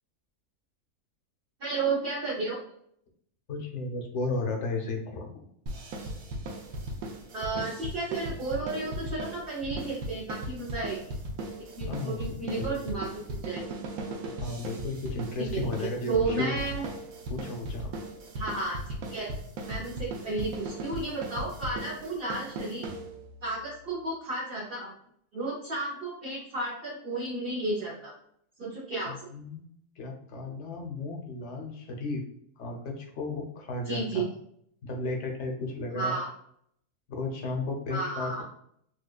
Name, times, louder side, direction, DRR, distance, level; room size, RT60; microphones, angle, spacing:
voice 1, 1.6-2.6 7.3-11.0 11.8-13.6 15.4-16.8 18.3-18.8 19.1-19.3 19.7-22.9 23.4-24.9 25.3-28.1 28.6-29.2 33.8-34.3 35.9-36.3 37.9-38.4, right 3 dB, 50° right, -5 dB, 0.8 m, -32 dB
voice 2, 3.5-5.3 11.9-12.2 12.4-12.7 14.4-16.5 17.3-17.9 29.1-29.6 30.0-32.2 32.6-34.2 34.8-36.2 37.1-38.4, left 3 dB, 60° left, 2 dB, 0.9 m, -34 dB
sound 1, 5.7-23.4, right 1 dB, 75° right, 1.1 m, -37 dB
4.4 x 2.3 x 2.3 m, 0.69 s
omnidirectional pair, 1.6 m